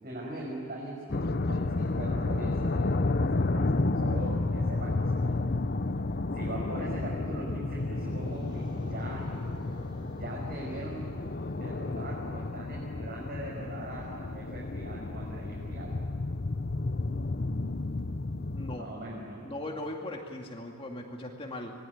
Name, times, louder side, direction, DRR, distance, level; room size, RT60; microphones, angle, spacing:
voice 1, 0.0-5.4 6.3-9.3 10.0-11.1 11.5-16.0 18.7-19.4, right 1 dB, 45° right, -4 dB, 6.1 m, -41 dB
sound 1, 1.1-18.8, left 2 dB, 45° left, 0.7 m, -31 dB
sound 2, 7.9-12.9, equal, 20° right, 4.7 m, -50 dB
voice 2, 18.5-18.9 19.4-21.7, left 1 dB, 25° left, 1 dB, 2.3 m, -38 dB
26.5 x 21.0 x 9.8 m, 2.2 s
head